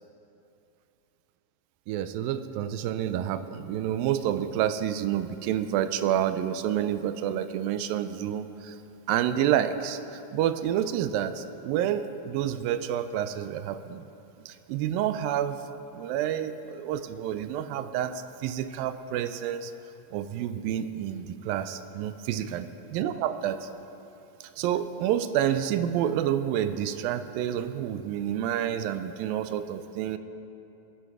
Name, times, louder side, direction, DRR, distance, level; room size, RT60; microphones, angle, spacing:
voice 1, 1.9-8.8 9.1-14.0 14.5-15.6 15.9-19.7 20.1-23.7 24.6-30.2, right 10 dB, 80° right, 11 dB, 2.3 m, -29 dB
20.5 x 10.5 x 4.7 m, 2.8 s
omnidirectional pair, 4.2 m